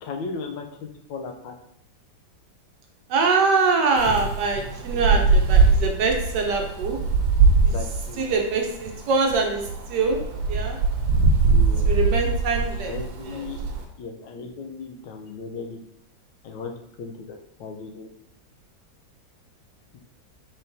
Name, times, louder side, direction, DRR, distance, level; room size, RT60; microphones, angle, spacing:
voice 1, 0.0-1.5 7.7-8.2 11.2-11.9 12.9-13.6 14.0-15.8 16.4-18.1 19.9-20.0, left 4 dB, 85° left, 3 dB, 1.3 m, -36 dB
voice 2, 3.1-7.0 7.6-7.7 8.2-10.2 10.5-10.8 11.8-13.0 13.2-13.4, right 4 dB, 70° right, 2 dB, 1.2 m, -24 dB
Wind, 4.0-13.8, right 4 dB, 90° right, 1.5 m, -22 dB
4.3 x 3.8 x 2.6 m, 0.75 s
omnidirectional pair, 2.1 m